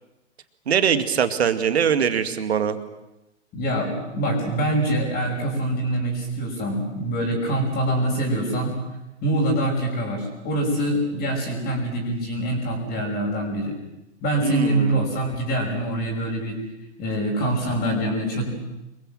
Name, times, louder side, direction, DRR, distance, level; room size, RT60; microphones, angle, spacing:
voice 1, 0.7-2.8 14.4-15.1, right 7 dB, 60° right, 11 dB, 2.4 m, -22 dB
voice 2, 3.5-8.7 9.2-13.8 14.2-16.6 17.0-18.5, right 1 dB, 25° left, 0 dB, 5.9 m, -24 dB
26.0 x 23.0 x 7.6 m, 0.94 s
figure-of-eight pair, 110°, 35 cm